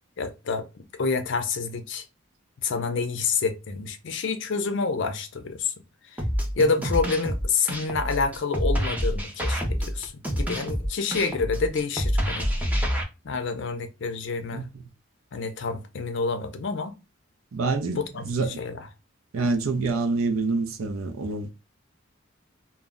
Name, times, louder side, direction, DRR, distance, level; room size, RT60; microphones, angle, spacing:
voice 1, 0.2-2.0 2.6-5.7 6.6-12.5 13.2-14.7 15.3-17.0 18.0-18.9, left 4 dB, 60° left, 0.5 m, -28 dB
sound 1, 6.2-13.0, equal, 5° right, 0.5 m, -27 dB
voice 2, 6.6-6.9 14.5-14.6 17.5-18.6 19.3-21.5, right 3 dB, 85° right, 0.5 m, -27 dB
2.2 x 2.1 x 3.5 m
head